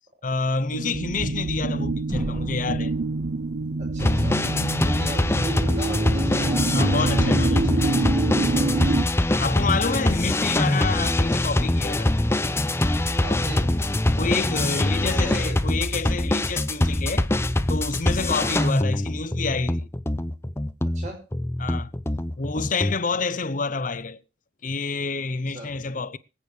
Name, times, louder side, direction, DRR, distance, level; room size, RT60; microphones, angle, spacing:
voice 1, 0.2-2.9 6.7-7.9 9.4-12.1 14.2-17.3 17.7-19.9 21.6-21.9 22.4-24.2 24.6-26.2, left 4 dB, 45° left, 0.8 m, -28 dB
sound 1, 0.7-9.0, right 3 dB, 65° right, 0.8 m, -26 dB
sound 2, 2.1-6.0, equal, 25° right, 2.5 m, -38 dB
voice 2, 3.8-4.4 4.8-7.3 8.5-8.9 13.2-13.6 14.8-15.7 18.6-18.7 20.9-21.2 25.5-25.7, right 1 dB, 40° right, 6.0 m, -38 dB
sound 3, 4.0-22.9, left 1 dB, 15° left, 0.6 m, -23 dB
24.5 x 8.6 x 3.3 m
head